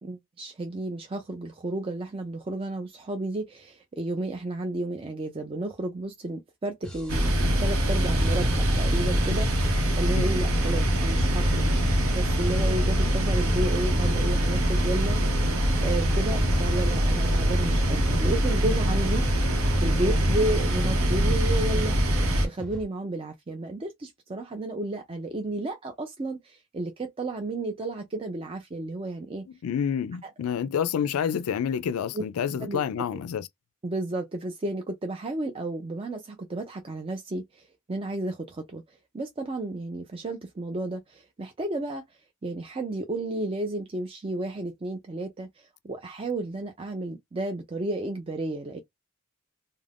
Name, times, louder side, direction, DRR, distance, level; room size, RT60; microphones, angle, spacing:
voice 1, 0.0-11.7 12.1-15.2 15.8-19.2 19.8-29.5 30.2-30.3 32.1-32.2 32.6-32.8 33.8-48.8, right 2 dB, 25° right, 0.4 m, -32 dB
sound 1, 6.8-22.8, equal, 5° left, 0.7 m, -44 dB
sound 2, 7.1-22.5, equal, 80° right, 0.9 m, -23 dB
sound 3, 8.2-10.1, left 1 dB, 45° right, 1.3 m, -39 dB
voice 2, 29.6-33.5, left 8 dB, 80° left, 0.3 m, -28 dB
2.5 x 2.1 x 3.3 m
head